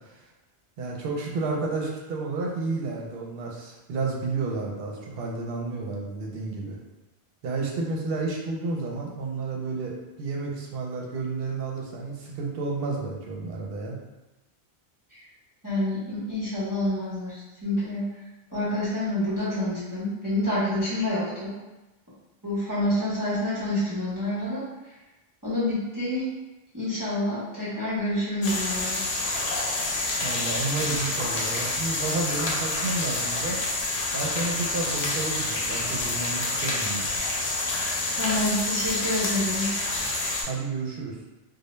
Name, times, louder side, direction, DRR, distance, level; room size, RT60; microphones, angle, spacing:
voice 1, 0.8-6.8 7.4-14.0 30.2-33.6 34.1-37.1 40.5-41.1, right 3 dB, 70° right, -1 dB, 0.8 m, -31 dB
voice 2, 15.6-18.1 18.5-21.6 22.4-24.6 25.4-26.3 26.7-29.0 37.8-39.7, left 1 dB, 20° right, -11 dB, 0.8 m, -28 dB
sound 1, 28.4-40.4, left 2 dB, 85° left, 0.8 m, -28 dB
2.2 x 2.1 x 3.0 m, 1.0 s
omnidirectional pair, 1.0 m